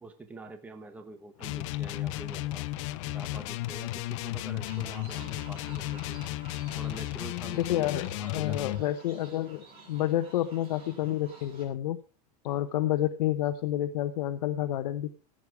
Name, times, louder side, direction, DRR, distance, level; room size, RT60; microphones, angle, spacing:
voice 1, 0.0-2.7 3.1-6.2 6.7-8.8, right 2 dB, 5° right, 8 dB, 1.1 m, -46 dB
sound 1, 1.4-8.8, left 16 dB, 50° left, 0.7 m, -34 dB
sound 2, 4.6-11.6, right 3 dB, 25° right, 5.2 m, -52 dB
voice 2, 7.5-12.0 12.4-15.2, left 13 dB, 85° left, 9 dB, 1.0 m, -29 dB
16.0 x 8.7 x 4.7 m, 0.35 s
supercardioid pair, 170°, 21 cm